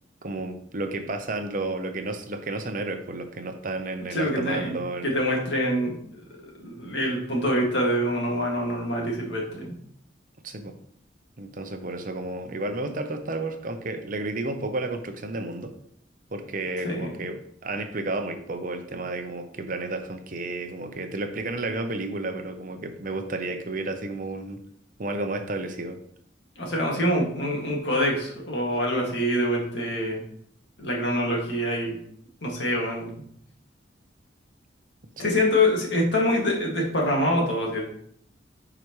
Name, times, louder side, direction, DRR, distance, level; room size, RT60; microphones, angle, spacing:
voice 1, 0.2-5.1 10.4-10.7 11.4-15.7 16.3-24.6 25.0-26.0 35.2-35.4, right 2 dB, 45° right, 6 dB, 0.8 m, -32 dB
voice 2, 4.1-4.7 5.0-6.0 6.6-9.8 16.8-17.1 26.6-30.2 30.8-32.0 32.4-33.1 35.2-37.8, left 1 dB, 65° left, -1 dB, 2.1 m, -25 dB
10.0 x 4.8 x 3.2 m, 0.66 s
head